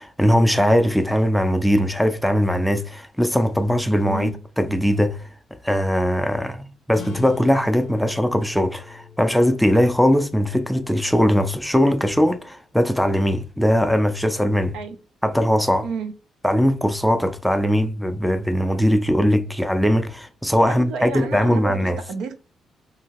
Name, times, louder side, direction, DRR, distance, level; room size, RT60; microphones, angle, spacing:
voice 1, 0.0-4.3 4.6-5.3 5.6-14.7 15.2-15.9 16.4-22.0, equal, ahead, 0.4 m, -20 dB
voice 2, 4.1-4.4 14.7-15.0 15.8-16.1 20.7-22.4, right 5 dB, 85° right, 0.5 m, -31 dB
sound 1, 6.9-12.0, left 7 dB, 60° left, 0.7 m, -42 dB
2.7 x 2.5 x 2.9 m
cardioid pair, 90°, 0 cm